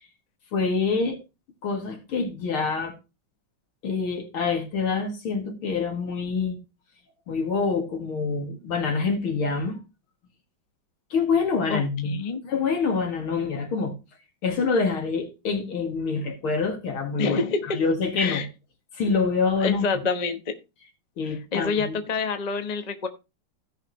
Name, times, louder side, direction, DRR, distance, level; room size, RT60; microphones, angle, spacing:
voice 1, 0.5-1.2 1.6-2.9 3.8-6.6 7.3-9.8 11.1-12.1 12.4-13.9 14.4-17.4 17.7-18.5 18.9-19.9 21.2-22.0, left 4 dB, 80° left, 2.9 m, -26 dB
voice 2, 11.7-12.4 17.2-17.8 18.2-18.5 19.6-20.5 21.3-23.1, left 4 dB, 35° left, 0.6 m, -27 dB
16.5 x 5.7 x 3.0 m
omnidirectional pair, 2.3 m